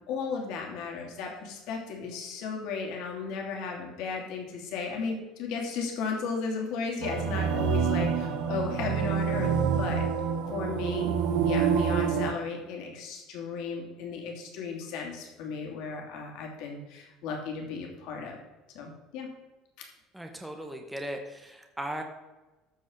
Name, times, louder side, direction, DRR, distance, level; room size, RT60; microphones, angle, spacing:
voice 1, 0.1-10.1 10.5-11.1 11.4-18.4 18.7-19.3, left 5 dB, 60° left, 1 dB, 2.7 m, -35 dB
sound 1, 7.0-12.3, right 7 dB, 65° right, 1.2 m, -27 dB
voice 2, 20.1-22.0, right 1 dB, 5° right, 3 dB, 0.9 m, -37 dB
13.5 x 4.9 x 6.3 m, 1.1 s
cardioid pair, 175°, 0 cm